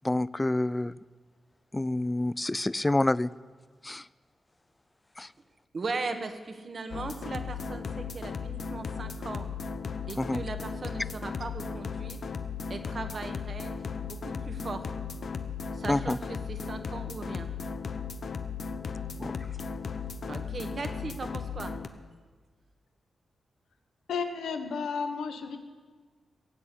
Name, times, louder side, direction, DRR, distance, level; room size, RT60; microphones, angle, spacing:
voice 1, 0.0-1.0 1.7-3.3 3.8-4.1 5.2-5.3 10.2-10.4 15.9-16.2 19.2-19.5, left 2 dB, 20° left, 19 dB, 0.3 m, -28 dB
voice 2, 5.7-9.5 10.1-12.2 12.7-14.8 15.7-17.5 20.3-21.7, right 3 dB, 50° right, 8 dB, 1.6 m, -38 dB
sound 1, 6.9-21.9, left 5 dB, 65° left, 0.9 m, -36 dB
voice 3, 24.1-25.6, left 5 dB, 90° left, 7 dB, 1.3 m, -32 dB
17.0 x 7.9 x 8.5 m, 1.5 s
cardioid pair, 70°, 0 cm